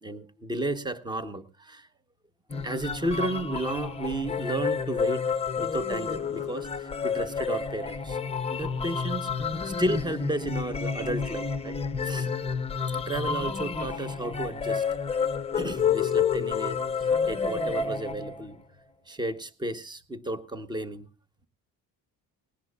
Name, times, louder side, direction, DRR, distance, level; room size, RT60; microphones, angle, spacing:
voice 1, 0.0-1.9 2.6-5.2 5.6-8.2 8.5-11.8 12.0-12.3 12.9-14.8 15.5-18.6 19.1-21.1, right 1 dB, 10° right, 13 dB, 0.9 m, -33 dB
sound 1, 2.5-18.5, left 6 dB, 15° left, 0.7 m, -30 dB
19.5 x 17.5 x 2.3 m, 0.31 s
cardioid pair, 145°, 35 cm